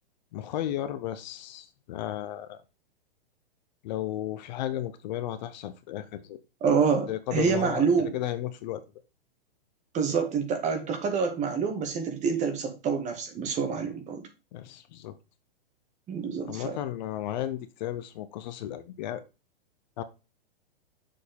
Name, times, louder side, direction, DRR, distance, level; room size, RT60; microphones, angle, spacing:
voice 1, 0.3-2.6 3.8-6.4 7.1-8.8 14.5-15.1 16.4-19.2 20.0-20.1, left 12 dB, 50° left, 0.8 m, -34 dB
voice 2, 6.6-8.2 9.9-14.2 16.1-16.8, right 6 dB, 25° right, 1.8 m, -27 dB
6.8 x 4.1 x 5.3 m
hypercardioid pair, 130°, 29 cm